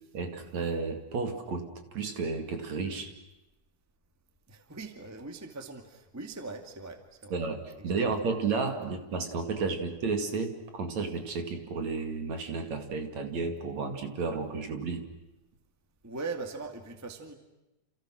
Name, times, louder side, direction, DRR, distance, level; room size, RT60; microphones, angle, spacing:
voice 1, 0.1-3.1 7.3-15.1, right 4 dB, 50° right, 6 dB, 3.3 m, -32 dB
voice 2, 4.5-7.4 7.8-8.1 8.8-8.9 16.0-17.3, right 3 dB, 10° right, 6 dB, 1.1 m, -41 dB
29.5 x 28.5 x 6.4 m, 0.96 s
omnidirectional pair, 4.4 m